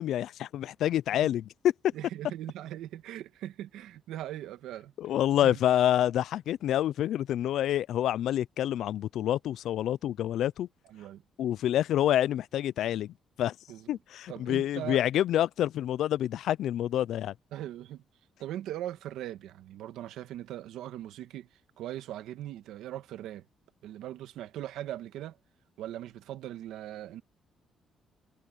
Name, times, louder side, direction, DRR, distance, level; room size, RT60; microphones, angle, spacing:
voice 1, 0.0-1.7 5.0-10.7 11.4-13.5 13.9-17.3, left 12 dB, 75° left, 0.4 m, -27 dB
voice 2, 1.9-4.9 5.4-5.6 10.8-11.2 13.7-13.9 14.3-15.0 17.5-18.0 18.4-21.5 21.8-23.4 23.8-25.4 25.8-27.2, right 12 dB, 85° right, 1.6 m, -40 dB
cardioid pair, 90°, 0 cm